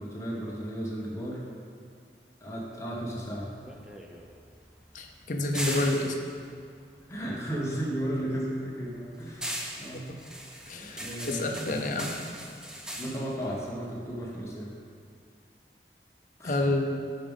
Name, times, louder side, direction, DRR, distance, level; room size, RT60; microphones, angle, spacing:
voice 1, 0.0-1.4 2.4-3.5 5.6-5.9 7.1-10.1 10.7-11.8 12.9-14.7 16.4-16.6, right 1 dB, 15° left, -4 dB, 1.0 m, -35 dB
sound 1, 3.2-7.7 8.0-14.5, equal, 5° right, 0.4 m, -40 dB
voice 2, 4.9-6.1 10.7-12.1 16.4-17.0, left 2 dB, 45° left, 3 dB, 0.6 m, -29 dB
5.4 x 4.9 x 5.3 m, 2.3 s
head